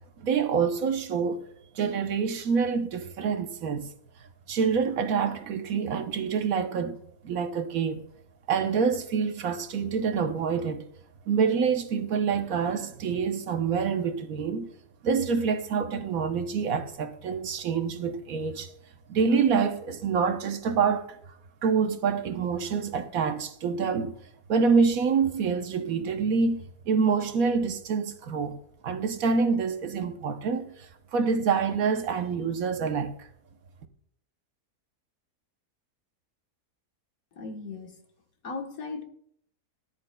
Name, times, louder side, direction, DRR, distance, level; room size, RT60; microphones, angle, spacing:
voice 1, 0.2-1.4 1.7-3.9 4.5-7.0 7.2-8.0 8.5-10.9 11.3-14.7 15.0-18.7 19.1-21.2 21.6-24.2 24.5-28.6 28.8-33.3, right 5 dB, 65° right, 1.2 m, -26 dB
voice 2, 37.3-38.0 38.4-39.0, left 4 dB, 65° left, 1.6 m, -37 dB
18.0 x 10.5 x 2.2 m
omnidirectional pair, 1.6 m